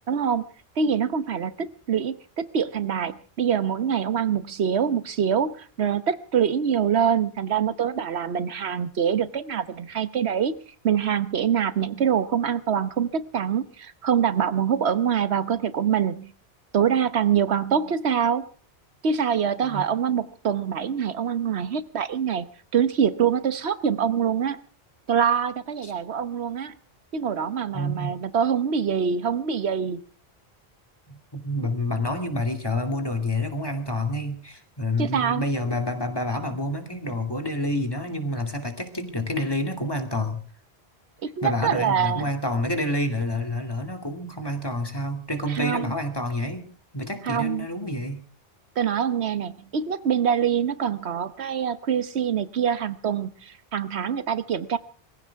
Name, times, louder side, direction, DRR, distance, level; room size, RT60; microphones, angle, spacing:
voice 1, 0.1-0.4 0.8-10.5 10.8-16.3 16.7-18.5 19.0-22.5 22.7-24.6 25.1-26.7 27.1-30.0 35.0-35.4 41.2-42.2 45.5-45.9 47.2-47.7 48.8-54.8, right 8 dB, 85° right, 13 dB, 1.3 m, -25 dB
voice 2, 27.7-28.1 31.3-40.4 41.4-46.7 46.9-48.2, left 1 dB, 20° left, 5 dB, 2.5 m, -28 dB
23.5 x 15.5 x 3.5 m, 0.41 s
omnidirectional pair, 1.1 m